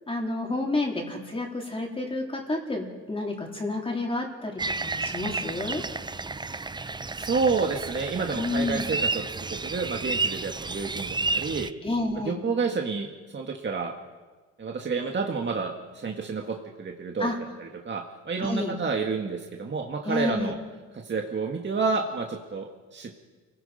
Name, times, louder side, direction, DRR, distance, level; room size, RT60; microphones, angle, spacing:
voice 1, 0.1-5.8 8.3-8.9 11.8-12.4 17.2-17.4 18.4-18.7 20.1-20.5, left 2 dB, 20° left, 0 dB, 3.7 m, -30 dB
sound 1, 4.6-11.7, right 3 dB, 15° right, 0.6 m, -31 dB
voice 2, 7.2-11.7 12.3-13.9 14.6-17.3 17.6-20.6 21.0-23.2, right 4 dB, 35° right, 2 dB, 1.9 m, -29 dB
29.0 x 17.5 x 5.2 m, 1.4 s
cardioid pair, 90°, 30 cm